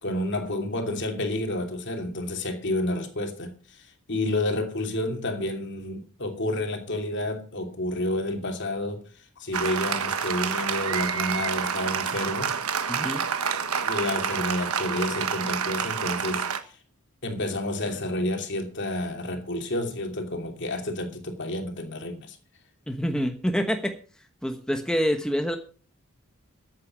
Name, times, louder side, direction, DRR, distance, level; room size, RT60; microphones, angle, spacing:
voice 1, 0.0-9.0 9.4-12.6 13.8-16.5 17.2-22.4, left 1 dB, 55° left, 2.8 m, -30 dB
Applause, 9.5-16.6, right 6 dB, 90° right, 1.3 m, -28 dB
voice 2, 12.9-13.3 22.9-24.0 24.4-25.6, equal, 5° left, 1.1 m, -26 dB
14.0 x 8.7 x 6.1 m
head